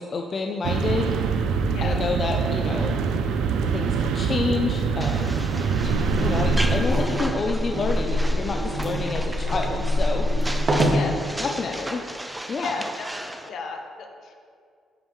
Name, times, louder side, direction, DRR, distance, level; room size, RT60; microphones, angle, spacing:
voice 1, 0.0-1.4 1.8-3.0 3.7-5.4 5.8-5.9 6.2-10.6 11.4-12.0 12.5-12.8, left 3 dB, 40° left, 2 dB, 0.5 m, -29 dB
sound 1, 0.6-6.9, right 6 dB, 90° right, 0.5 m, -24 dB
sound 2, 5.0-13.5, right 1 dB, 10° right, 0.5 m, -36 dB
sound 3, 5.7-11.0, equal, 45° right, 1.8 m, -24 dB
voice 2, 10.9-12.0 12.5-13.1 13.4-14.3, left 4 dB, 70° left, 3 dB, 1.0 m, -35 dB
10.5 x 5.3 x 3.1 m, 2.2 s
cardioid pair, 90°, 0 cm